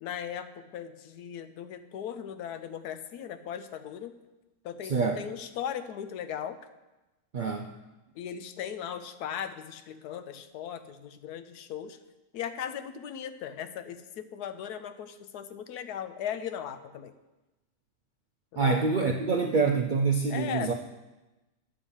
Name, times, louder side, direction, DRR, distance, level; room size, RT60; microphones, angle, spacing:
voice 1, 0.0-4.2 4.6-6.6 8.1-12.0 12.3-17.1 18.5-18.8 20.3-20.7, left 9 dB, 90° left, 10 dB, 1.2 m, -38 dB
voice 2, 4.8-5.2 7.3-7.7 18.6-20.7, right 4 dB, 90° right, 4 dB, 0.4 m, -26 dB
9.9 x 6.3 x 5.5 m, 1.1 s
omnidirectional pair, 1.6 m